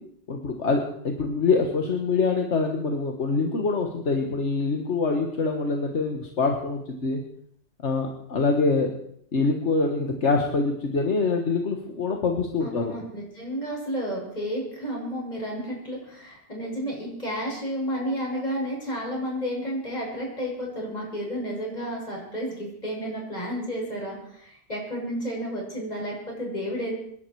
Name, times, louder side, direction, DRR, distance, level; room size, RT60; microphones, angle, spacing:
voice 1, 0.3-7.2 7.8-8.9 9.3-13.0, left 4 dB, 70° left, 3 dB, 1.8 m, -25 dB
voice 2, 12.6-26.9, equal, 35° left, -3 dB, 7.2 m, -31 dB
27.5 x 11.0 x 4.7 m, 0.68 s
omnidirectional pair, 1.2 m